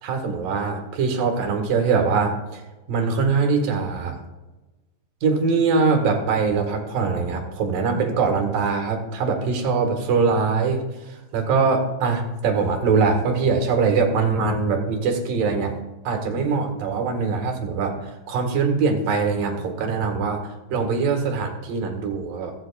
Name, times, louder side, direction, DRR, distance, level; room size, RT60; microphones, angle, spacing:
voice 1, 0.0-2.6 2.9-4.2 5.2-10.8 11.3-15.8 16.0-18.0 18.3-20.4 20.7-22.5, right 4 dB, 60° right, 3 dB, 2.9 m, -22 dB
23.5 x 8.1 x 2.4 m, 1.1 s
omnidirectional pair, 5.0 m